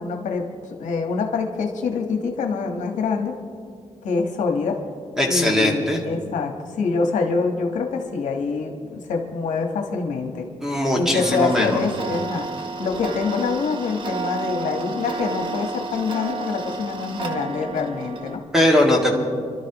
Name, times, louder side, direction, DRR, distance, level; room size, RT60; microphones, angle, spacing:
voice 1, 0.0-3.4 4.0-4.8 5.3-10.5 10.9-12.5 12.8-18.4, left 4 dB, 80° left, 3 dB, 1.4 m, -25 dB
voice 2, 5.2-6.0 10.6-11.8 18.5-19.2, left 1 dB, 5° right, 0 dB, 2.1 m, -19 dB
Tick-tock, 11.2-18.4, right 3 dB, 40° right, 1.3 m, -31 dB
25.5 x 12.5 x 3.0 m, 2.1 s
cardioid pair, 130°, 13 cm